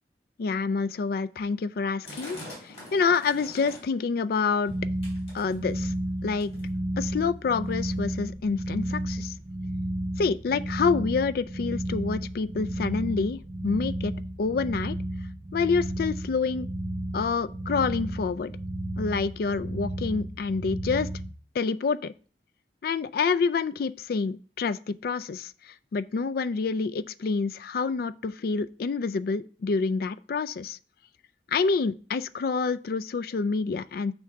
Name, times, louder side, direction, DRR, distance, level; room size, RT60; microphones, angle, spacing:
voice 1, 0.4-2.4 2.9-4.7 5.3-5.9 6.2-6.5 7.0-9.3 10.2-14.1 14.4-15.0 15.5-16.7 17.1-18.5 19.0-21.1 21.6-22.1 22.8-25.5 25.9-30.8 31.5-34.1, left 4 dB, 55° left, 0.3 m, -27 dB
sound 1, 2.0-4.0 4.4-4.7 5.0-5.9 6.4-6.7 7.5-7.6 7.8-7.9 8.5-8.6 9.3-9.4, left 1 dB, 35° left, 3.5 m, -44 dB
sound 2, 4.7-21.3, right 1 dB, 25° right, 0.7 m, -32 dB
6.4 x 3.5 x 5.6 m
head